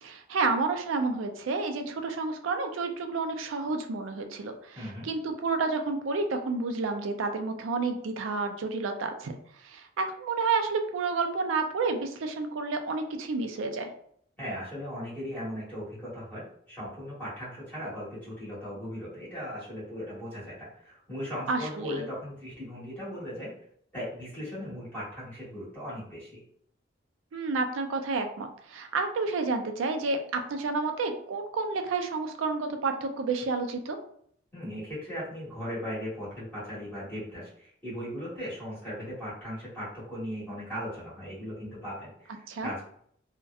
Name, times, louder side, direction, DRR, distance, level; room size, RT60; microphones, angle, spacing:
voice 1, 0.0-9.3 9.6-13.9 21.5-22.0 27.3-34.0 42.5-42.7, right 3 dB, 85° right, 6 dB, 0.4 m, -30 dB
voice 2, 4.7-5.1 14.4-23.5 23.9-26.4 34.5-42.8, equal, 10° left, -11 dB, 1.2 m, -38 dB
2.6 x 2.1 x 2.3 m, 0.65 s
head